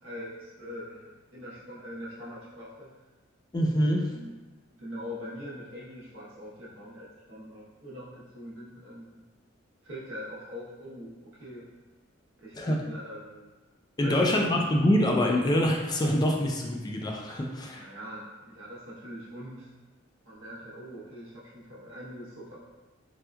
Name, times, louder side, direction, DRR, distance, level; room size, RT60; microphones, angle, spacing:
voice 1, 0.0-2.9 4.1-4.4 4.7-9.2 9.8-11.7 12.4-13.5 14.0-14.3 17.8-19.7 20.3-22.6, equal, 75° right, -7 dB, 0.9 m, -42 dB
voice 2, 3.5-4.0 12.6-12.8 14.0-17.9, equal, 20° left, 0 dB, 0.3 m, -25 dB
4.3 x 2.3 x 2.2 m, 1.2 s
head